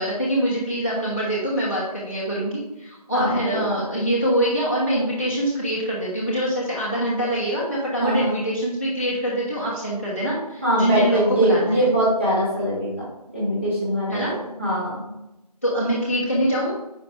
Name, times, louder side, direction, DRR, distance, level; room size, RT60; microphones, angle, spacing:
voice 1, 0.0-11.8 14.1-14.3 15.6-16.7, equal, 20° left, -9 dB, 1.2 m, -24 dB
voice 2, 3.1-3.6 8.0-8.3 10.6-12.9 13.3-14.2 14.6-15.0, right 1 dB, 20° right, -10 dB, 2.5 m, -22 dB
10.5 x 4.9 x 3.6 m, 0.92 s
figure-of-eight pair, 175°, 21 cm